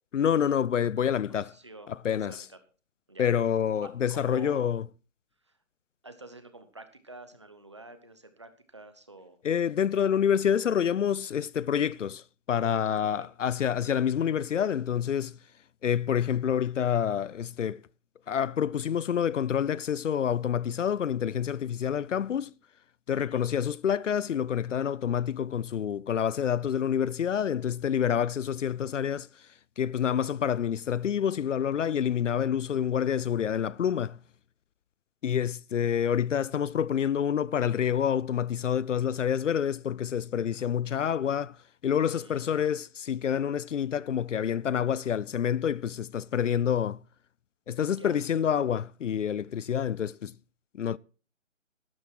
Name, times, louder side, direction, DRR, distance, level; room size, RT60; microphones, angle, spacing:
voice 1, 0.1-1.5 1.9-2.4 3.2-4.9 9.4-15.4 15.8-17.8 18.3-22.5 23.1-29.3 29.8-34.2 35.2-41.6 41.8-47.0 47.7-50.3 50.7-51.0, left 8 dB, 70° left, 0.5 m, -27 dB
voice 2, 1.4-2.6 3.1-3.2 3.8-4.7 5.4-5.5 6.0-9.4 12.8-13.3 23.2-23.4 40.5-40.7 42.1-42.4 47.9-48.2, right 2 dB, 20° right, 1.0 m, -48 dB
12.0 x 11.5 x 4.5 m
hypercardioid pair, 180°, 38 cm